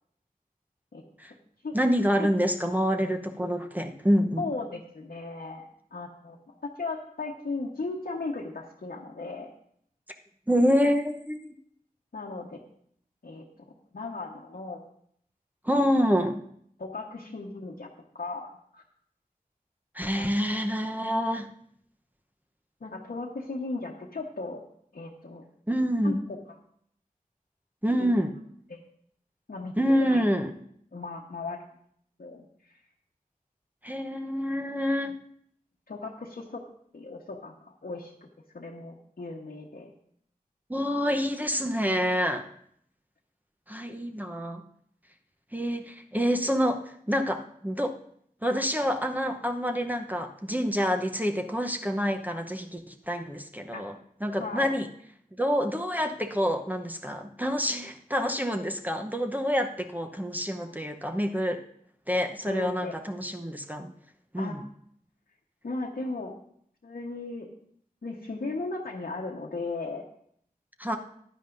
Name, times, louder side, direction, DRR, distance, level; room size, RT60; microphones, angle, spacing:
voice 1, 1.7-4.5 10.5-11.5 15.6-16.4 19.9-21.5 25.7-26.2 27.8-28.3 29.8-30.5 33.8-35.2 40.7-42.5 43.7-44.6 45.5-47.9 48.4-54.0 54.2-54.9 55.4-61.6 62.1-63.9 64.3-64.6 70.8-71.0, equal, 10° right, 4 dB, 0.8 m, -27 dB
voice 2, 4.4-9.5 12.1-12.7 13.2-13.4 13.9-14.8 16.8-17.9 18.1-18.8 20.2-20.3 22.8-24.6 24.9-25.5 26.0-26.2 28.0-28.1 28.7-28.8 29.5-30.2 30.9-31.6 32.2-32.4 35.9-36.6 36.9-38.3 38.5-39.9 53.7-53.9 54.4-54.7 62.4-62.9 64.4-64.5 65.6-66.4 66.8-67.5 68.0-70.0, left 3 dB, 75° left, -2 dB, 1.1 m, -36 dB
15.0 x 10.5 x 2.6 m, 0.66 s
wide cardioid pair, 60°, 15 cm